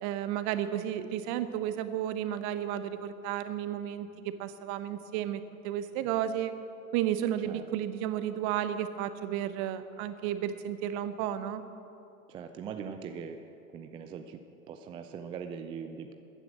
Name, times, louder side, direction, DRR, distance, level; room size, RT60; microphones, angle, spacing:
voice 1, 0.0-6.5 6.9-11.6, right 11 dB, 40° right, 11 dB, 1.0 m, -33 dB
voice 2, 12.3-13.4 13.7-14.4 14.7-16.1, right 6 dB, 15° right, 7 dB, 0.3 m, -41 dB
14.0 x 9.8 x 7.4 m, 2.8 s
figure-of-eight pair, 95°, 43 cm